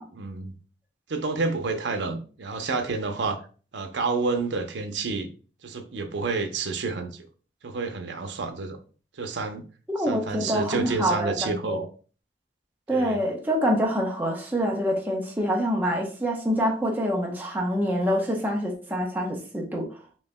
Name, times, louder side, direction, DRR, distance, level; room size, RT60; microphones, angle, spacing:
voice 1, 0.1-0.5 1.1-3.4 3.7-5.3 5.6-7.2 7.6-8.8 9.2-9.6 10.1-11.9 12.9-13.2, right 4 dB, 90° right, 0.7 m, -29 dB
voice 2, 9.9-11.8 12.9-19.9, equal, 10° right, 0.8 m, -26 dB
5.2 x 2.8 x 2.2 m
head